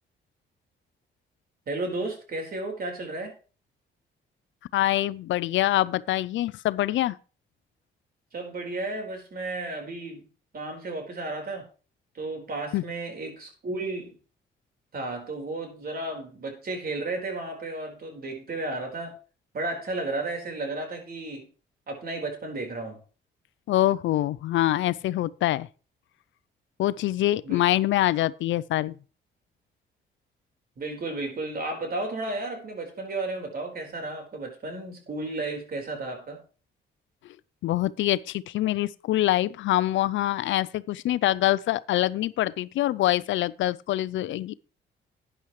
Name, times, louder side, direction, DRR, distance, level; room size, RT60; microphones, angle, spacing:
voice 1, 1.7-3.3 8.3-10.3 10.5-11.7 12.1-14.2 14.9-19.1 19.5-21.5 21.9-23.0 27.4-27.6 30.8-36.4, right 2 dB, 50° right, 4.3 m, -33 dB
voice 2, 4.7-7.2 12.7-12.8 23.7-25.7 26.8-28.9 37.6-44.5, left 14 dB, 75° left, 0.5 m, -25 dB
12.0 x 9.9 x 3.1 m
cardioid pair, 90°, 20 cm